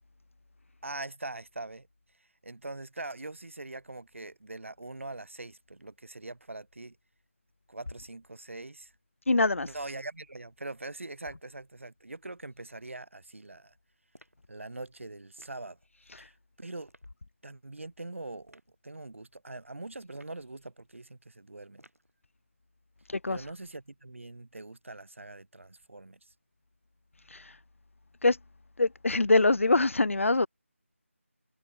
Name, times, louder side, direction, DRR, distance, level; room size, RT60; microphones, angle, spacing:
voice 1, 0.8-1.9 2.4-7.0 7.7-8.9 9.6-13.7 14.5-15.8 16.2-16.9 17.4-21.8 23.3-26.2, right 2 dB, 60° right, 1.3 m, -42 dB
voice 2, 9.3-9.7 23.1-23.4 27.3-27.5 28.2-28.4 28.8-30.5, left 2 dB, 65° left, 0.5 m, -24 dB
sound 1, 14.1-14.5 15.4-15.7 16.9-17.1 18.5-18.7 20.1-20.5 21.8-22.1, right 1 dB, 90° right, 7.9 m, -58 dB
figure-of-eight pair, 165°, 8 cm